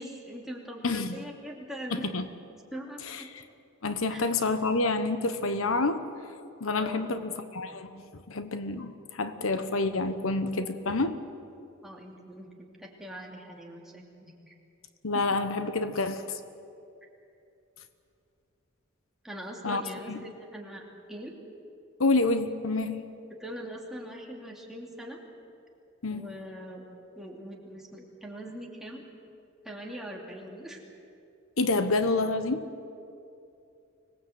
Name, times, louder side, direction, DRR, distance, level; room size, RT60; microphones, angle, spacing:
voice 1, 0.0-2.1 2.7-3.3 4.1-4.3 6.7-7.1 11.8-12.5 12.8-14.5 15.1-15.2 19.2-20.8 21.1-21.4 23.4-25.2 26.1-26.9 27.1-29.0 29.6-30.8, equal, ahead, -2 dB, 2.8 m, -42 dB
voice 2, 0.8-1.2 1.9-2.2 3.1-3.2 3.8-6.0 6.6-11.2 15.0-16.4 19.6-19.8 20.1-20.2 22.0-23.0 26.0-26.3 31.6-32.7, left 3 dB, 80° left, 10 dB, 1.1 m, -28 dB
25.0 x 19.0 x 8.1 m, 2.6 s
head